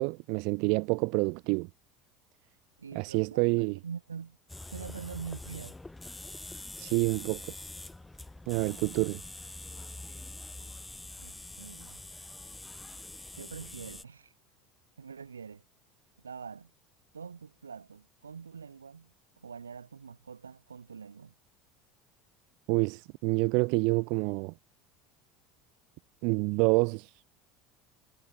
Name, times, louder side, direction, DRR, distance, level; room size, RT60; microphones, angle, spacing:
voice 1, 0.0-1.7 2.9-3.8 6.8-7.5 8.5-9.2 22.7-24.5 26.2-27.3, right 33 dB, 55° right, 0.5 m, -28 dB
voice 2, 2.8-4.4 4.7-5.8 11.2-12.0 13.3-14.3 15.0-15.6 16.2-16.7 17.1-21.3, right 6 dB, 80° right, 5.6 m, -44 dB
sound 1, 4.5-14.0, left 2 dB, 10° left, 2.9 m, -45 dB
figure-of-eight pair, 70°, 0 cm